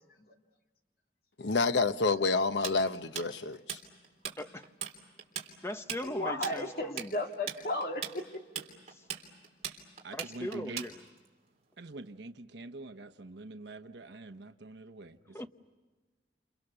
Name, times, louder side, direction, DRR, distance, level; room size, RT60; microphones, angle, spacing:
voice 1, 1.4-3.8, left 3 dB, 85° left, 0.9 m, -28 dB
Tools, 2.6-4.4 4.6-4.9 5.2-11.3, right 8 dB, 40° right, 3.6 m, -39 dB
voice 2, 4.4-4.7 5.6-7.1 8.9-9.0 10.1-10.9 15.3-15.5, left 1 dB, 15° left, 0.9 m, -39 dB
voice 3, 6.0-8.4, left 1 dB, 55° left, 2.7 m, -35 dB
voice 4, 10.0-10.8 11.8-15.5, right 2 dB, 80° right, 1.0 m, -45 dB
30.0 x 29.0 x 6.8 m
head